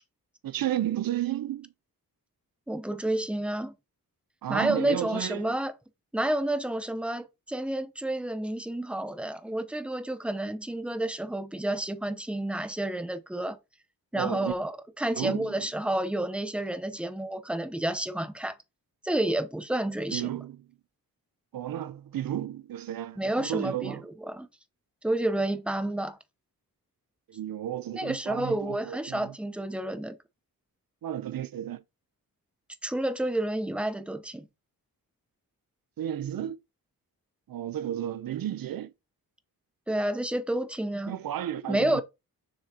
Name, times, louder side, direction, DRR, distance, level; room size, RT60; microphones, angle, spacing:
voice 1, 0.4-1.7 4.4-5.6 14.1-14.6 15.2-15.5 20.1-20.7 21.5-24.0 27.3-29.3 31.0-31.8 36.0-36.6 37.5-38.9 41.1-42.0, right 11 dB, 75° right, 0.6 m, -33 dB
voice 2, 2.7-3.7 4.5-5.7 6.1-13.6 14.1-18.5 19.0-20.3 23.2-24.5 25.0-26.2 27.9-30.2 32.8-34.5 39.9-41.1 41.7-42.0, right 1 dB, 5° right, 0.8 m, -30 dB
6.8 x 6.3 x 2.9 m
wide cardioid pair, 135°, 35 cm